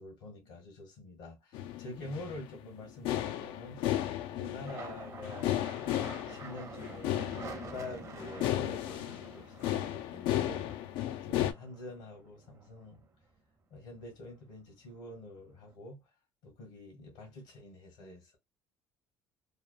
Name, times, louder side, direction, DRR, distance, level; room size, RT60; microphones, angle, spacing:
voice 1, 0.0-3.8 4.3-13.0 13.7-16.0 16.4-18.4, left 2 dB, 85° left, 1.4 m, -47 dB
sound 1, 1.5-11.5, left 13 dB, 70° left, 0.4 m, -34 dB
sound 2, 4.7-13.4 13.8-14.5 14.8-15.7, right 5 dB, 35° right, 0.8 m, -49 dB
3.4 x 2.0 x 2.4 m
supercardioid pair, 85°, 9 cm